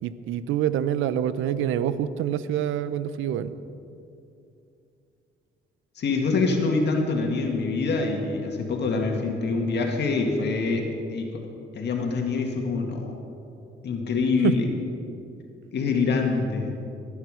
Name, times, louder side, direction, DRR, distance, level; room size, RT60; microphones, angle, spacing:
voice 1, 0.0-3.5 14.4-14.5, right 10 dB, 90° right, 14 dB, 0.6 m, -26 dB
voice 2, 6.0-11.3 11.7-13.2 13.8-14.7 15.7-16.7, left 4 dB, 60° left, 2 dB, 2.0 m, -25 dB
18.5 x 9.4 x 5.0 m, 2.6 s
cardioid pair, 90°, 20 cm